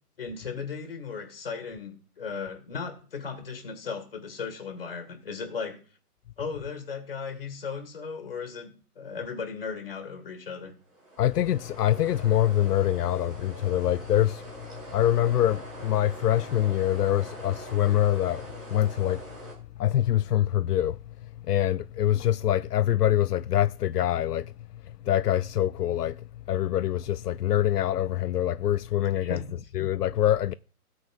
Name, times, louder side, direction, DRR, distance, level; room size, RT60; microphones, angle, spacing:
voice 1, 0.2-5.8 6.4-10.8 29.2-29.6, left 5 dB, 35° left, 1.9 m, -36 dB
sound 1, 10.8-19.5, right 1 dB, ahead, 1.8 m, -43 dB
voice 2, 11.2-19.2 19.8-21.0 21.5-24.5 24.9-29.4 29.7-30.5, left 12 dB, 80° left, 0.6 m, -25 dB
17.5 x 8.5 x 2.5 m
hypercardioid pair, 180°, 46 cm